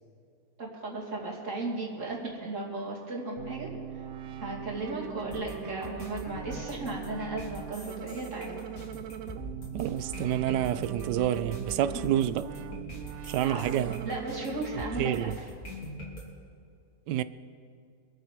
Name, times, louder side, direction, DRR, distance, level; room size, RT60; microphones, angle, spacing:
voice 1, 0.6-4.0 4.4-8.6 11.9-12.0 13.4-13.7 14.0-15.1, right 2 dB, 45° right, 3.1 m, -36 dB
sound 1, 3.4-15.4, right 9 dB, 65° right, 1.0 m, -41 dB
sound 2, 5.3-16.2, left 1 dB, 60° left, 3.6 m, -43 dB
sound 3, 9.0-9.1 9.5-9.9 10.3-10.7 11.1-11.5 11.9-12.3 12.7-13.1 13.5-13.9, equal, 90° left, 2.5 m, -48 dB
voice 2, 9.7-12.5 13.2-14.1 15.0-15.3 17.1-17.2, right 12 dB, 90° right, 1.2 m, -28 dB
26.0 x 8.8 x 4.6 m
omnidirectional pair, 1.8 m